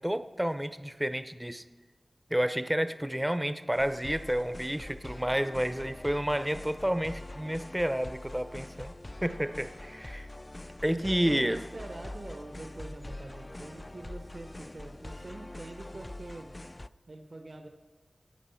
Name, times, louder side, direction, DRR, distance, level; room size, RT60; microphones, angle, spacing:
voice 1, 0.0-1.6 2.3-8.9 9.2-10.3 10.8-11.6, equal, 10° right, 10 dB, 0.7 m, -30 dB
sound 1, 3.7-16.9, left 1 dB, 30° left, 0.4 m, -44 dB
voice 2, 6.2-7.1 10.9-16.5 17.1-17.7, right 2 dB, 60° right, 3 dB, 1.2 m, -45 dB
15.0 x 8.7 x 5.7 m, 1.3 s
wide cardioid pair, 55°, 0 cm